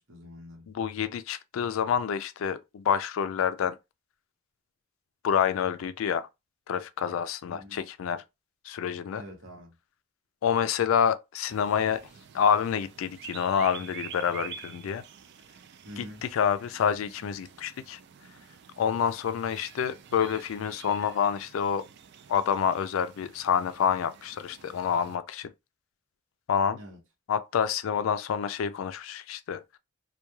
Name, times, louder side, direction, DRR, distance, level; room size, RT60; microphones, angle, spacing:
voice 1, 0.0-0.7 7.5-7.8 9.1-9.7 15.8-16.3 26.7-27.0, equal, 75° right, 1.0 m, -45 dB
voice 2, 0.7-3.8 5.2-6.3 6.7-8.2 8.6-9.2 10.4-12.1 12.3-15.0 16.0-18.0 18.8-21.8 22.3-25.5 26.5-26.8 27.3-29.6, left 7 dB, 85° left, 0.3 m, -28 dB
sound 1, 11.5-25.2, right 8 dB, 60° right, 0.3 m, -48 dB
3.0 x 2.3 x 2.2 m
head